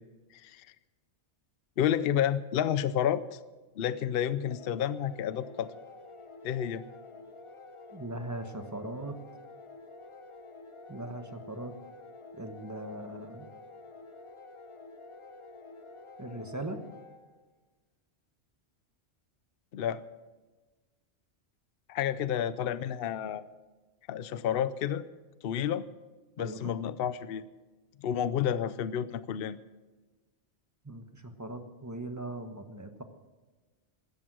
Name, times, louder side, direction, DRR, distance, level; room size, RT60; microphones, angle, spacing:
voice 1, 1.8-3.4 3.8-5.7 6.4-6.8 19.7-20.0 21.9-23.4 24.1-25.0 25.4-25.8 26.4-27.4 28.0-29.6, left 9 dB, 60° left, 15 dB, 0.8 m, -30 dB
sound 1, 4.5-17.5, left 3 dB, 30° left, 0.9 m, -49 dB
voice 2, 7.9-9.2 10.9-11.7 12.3-13.5 16.2-16.8 26.4-26.7 30.8-33.0, right 1 dB, 15° right, 7 dB, 1.2 m, -39 dB
16.5 x 13.0 x 6.2 m, 1.3 s
omnidirectional pair, 1.2 m